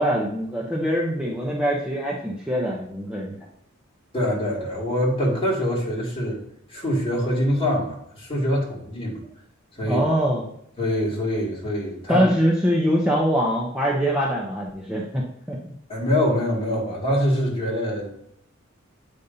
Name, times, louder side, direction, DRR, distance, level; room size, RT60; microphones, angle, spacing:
voice 1, 0.0-3.3 9.8-10.5 12.1-15.2 15.5-15.7, equal, 5° right, -3 dB, 0.8 m, -23 dB
voice 2, 4.1-6.4 6.7-9.2 9.8-10.0 10.8-12.2 15.9-18.2, equal, 30° left, -5 dB, 2.4 m, -24 dB
8.2 x 5.2 x 2.7 m, 0.72 s
head